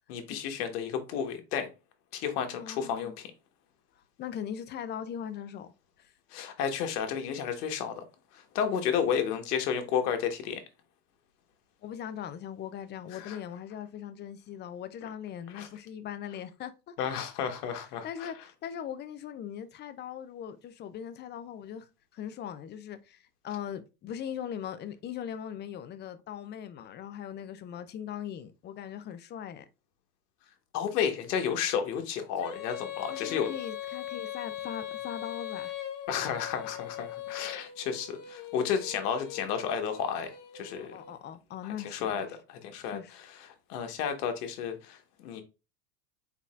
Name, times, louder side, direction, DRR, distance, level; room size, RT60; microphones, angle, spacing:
voice 1, 0.1-1.7 2.1-3.3 6.3-8.0 8.3-10.6 13.1-13.4 15.5-15.7 17.0-18.3 30.7-33.5 36.1-40.9 41.6-45.4, left 7 dB, 70° left, 1.3 m, -32 dB
voice 2, 2.6-3.1 4.2-5.7 6.0-6.1 11.8-16.9 18.0-29.7 33.1-35.7 40.8-42.3 42.9-43.1, left 9 dB, 25° left, 0.4 m, -40 dB
Female singing, 32.4-41.2, left 11 dB, 40° left, 1.1 m, -40 dB
4.2 x 4.0 x 2.4 m
hypercardioid pair, 95°, 48 cm